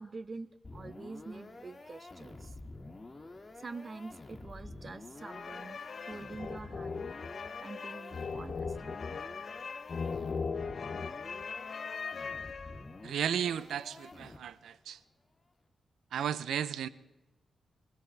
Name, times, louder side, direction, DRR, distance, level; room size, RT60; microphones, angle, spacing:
voice 1, 0.0-2.5 3.6-7.1 7.6-9.0, right 3 dB, 45° right, 0.8 m, -46 dB
sound 1, 0.6-14.7, left 2 dB, 30° left, 2.0 m, -49 dB
sound 2, 5.2-13.1, left 5 dB, 55° left, 0.7 m, -39 dB
voice 2, 13.0-15.0 16.1-16.9, right 9 dB, 90° right, 0.6 m, -34 dB
24.0 x 16.0 x 3.4 m
cardioid pair, 70°, 0 cm